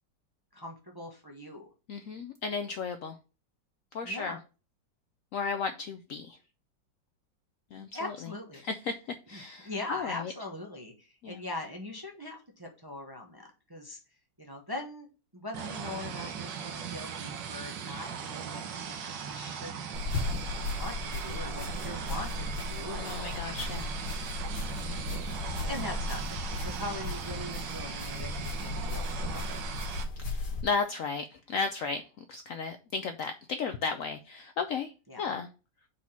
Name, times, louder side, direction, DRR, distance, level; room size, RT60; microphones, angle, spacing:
voice 1, 0.5-1.7 4.0-4.4 7.7-8.6 9.3-14.0 14.4-15.1 15.3-19.8 20.7-23.4 24.8-25.0 25.4-29.6 35.1-35.2, left 2 dB, 20° right, 1 dB, 0.6 m, -41 dB
voice 2, 1.9-3.2 3.9-4.4 5.3-6.4 7.7-8.2 8.6-10.3 11.2-11.4 22.9-23.9 24.9-25.0 30.2-34.9 35.2-35.5, left 5 dB, 90° left, 8 dB, 0.7 m, -34 dB
sound 1, 15.5-30.0, right 7 dB, 75° right, 1.5 m, -39 dB
sound 2, 19.9-30.6, left 3 dB, 65° left, 1.8 m, -36 dB
4.8 x 4.1 x 5.7 m, 0.32 s
omnidirectional pair, 2.0 m